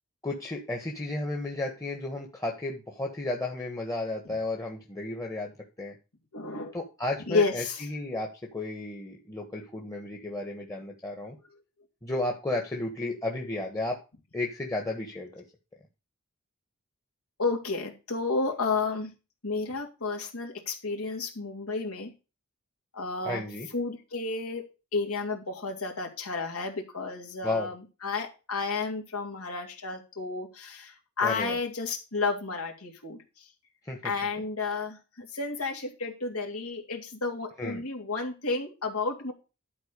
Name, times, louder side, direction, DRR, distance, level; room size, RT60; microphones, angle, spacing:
voice 1, 0.2-5.5 5.8-5.9 6.7-11.4 12.0-14.0 14.3-15.4 23.2-23.7 27.4-27.7 31.2-31.6 33.9-34.0 37.6-37.8, left 2 dB, 15° left, 1 dB, 1.4 m, -33 dB
voice 2, 6.3-6.7 7.3-7.9 17.4-19.1 19.4-22.1 22.9-23.4 23.7-33.4 34.0-39.3, left 4 dB, 75° left, 1 dB, 2.9 m, -31 dB
11.5 x 4.5 x 6.7 m, 0.29 s
head